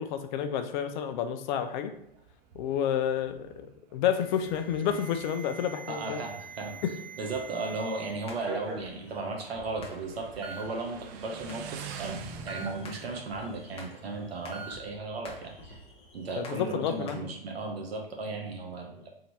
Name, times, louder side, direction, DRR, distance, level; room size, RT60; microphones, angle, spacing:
voice 1, 0.0-1.9 2.5-3.7 3.9-6.2 6.8-6.9 16.4-17.2, left 8 dB, 50° left, 8 dB, 0.6 m, -30 dB
Motorcycle, 1.9-14.9, right 6 dB, 30° right, 0.4 m, -48 dB
Alarm, 4.1-8.1 8.4-8.9 9.7-9.8 10.4-10.6 12.5-12.7 14.5-14.7, right 3 dB, 15° right, 0.9 m, -43 dB
voice 2, 5.9-6.7 7.2-12.2 12.5-15.8 16.1-19.1, right 3 dB, 90° right, 1 dB, 1.0 m, -36 dB
sound 1, 8.0-17.2, left 2 dB, 20° left, 0.8 m, -51 dB
3.7 x 2.6 x 4.5 m, 0.76 s
hypercardioid pair, 120°, 30 cm